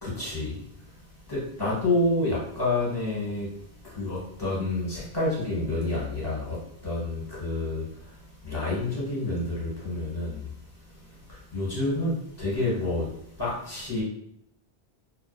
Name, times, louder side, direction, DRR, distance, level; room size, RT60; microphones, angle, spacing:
voice 1, 0.0-3.5 3.8-10.5 10.8-14.0, left 2 dB, 25° left, -7 dB, 0.9 m, -29 dB
2.7 x 2.1 x 2.2 m, 0.69 s
omnidirectional pair, 1.1 m